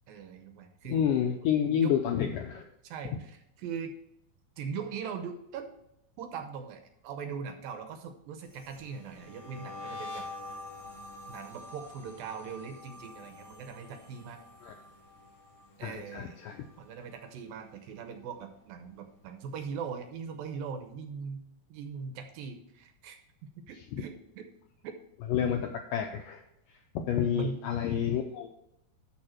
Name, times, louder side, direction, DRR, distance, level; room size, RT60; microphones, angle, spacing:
voice 1, 0.1-1.0 1.8-1.9 2.8-3.9 4.6-5.7 6.2-10.2 11.3-14.4 15.8-16.4 16.8-21.4 21.7-24.5 24.8-24.9 27.3-27.6, right 6 dB, 75° right, 6 dB, 2.4 m, -40 dB
voice 2, 0.9-2.6 14.6-14.7 15.8-16.6 23.9-24.0 25.3-26.4 27.1-28.5, left 9 dB, 80° left, 4 dB, 1.9 m, -29 dB
sound 1, 8.4-17.6 17.9-18.3 18.7-20.2, left 2 dB, 30° left, 4.0 m, -47 dB
13.0 x 4.4 x 4.4 m, 0.82 s
omnidirectional pair, 4.5 m